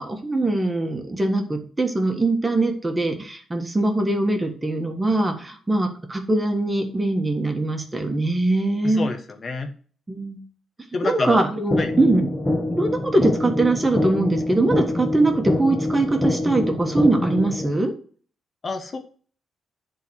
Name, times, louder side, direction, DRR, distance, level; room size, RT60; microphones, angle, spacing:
voice 1, 0.0-9.1 10.1-10.4 11.0-12.3 12.7-17.9, right 2 dB, 15° right, 4 dB, 1.5 m, -22 dB
voice 2, 8.8-9.7 10.9-11.4 11.8-11.9 18.6-19.0, left 3 dB, 35° left, 5 dB, 1.1 m, -27 dB
sound 1, 11.7-17.7, left 1 dB, 15° left, 1.3 m, -25 dB
10.5 x 3.9 x 6.3 m, 0.43 s
cardioid pair, 140°, 0 cm